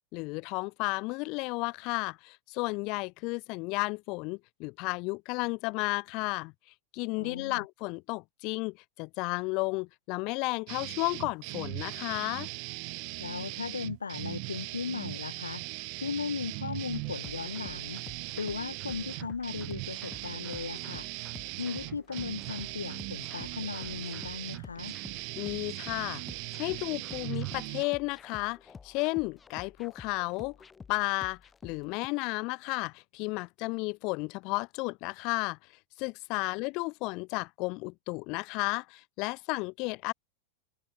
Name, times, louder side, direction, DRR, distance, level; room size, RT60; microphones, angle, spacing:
voice 1, 0.1-6.5 6.9-12.5 25.4-26.2 26.5-28.6 28.8-30.6 30.9-35.6 36.0-40.1, left 27 dB, 40° left, 0.7 m, -33 dB
voice 2, 7.2-7.6 13.2-15.6 16.0-21.1 21.6-25.0, left 5 dB, 75° left, 0.5 m, -37 dB
sound 1, 10.7-27.8, right 40 dB or more, 45° right, 0.4 m, -39 dB
sound 2, 16.9-32.1, left 5 dB, 15° left, 3.2 m, -51 dB
open air
figure-of-eight pair, 90°, 0 cm